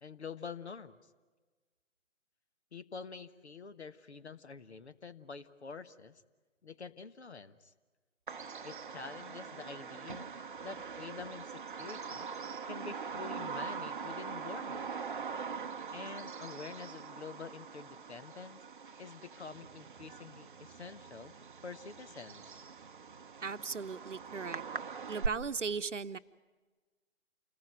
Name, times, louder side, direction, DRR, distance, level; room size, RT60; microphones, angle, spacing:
voice 1, 0.0-1.0 2.7-6.2 6.6-7.7 8.6-10.3 10.6-12.3 12.6-15.1 15.9-18.6 19.0-21.3 21.6-22.6, left 5 dB, 55° left, 12 dB, 1.3 m, -47 dB
Bird vocalization bird call bird song, 8.3-25.3, right 6 dB, 40° right, 0.7 m, -42 dB
voice 2, 23.4-24.6 25.1-26.2, right 5 dB, 65° right, 12 dB, 0.9 m, -37 dB
28.5 x 20.0 x 9.5 m, 1.3 s
figure-of-eight pair, 140°, 39 cm